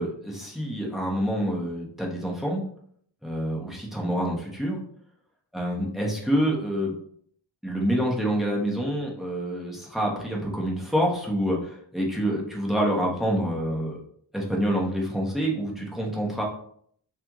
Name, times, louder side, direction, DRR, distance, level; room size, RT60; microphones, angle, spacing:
voice 1, 0.0-2.6 3.2-4.8 5.5-6.9 7.6-14.0 14.3-16.4, equal, ahead, -3 dB, 1.2 m, -27 dB
3.4 x 3.1 x 3.6 m, 0.63 s
wide cardioid pair, 45°, 49 cm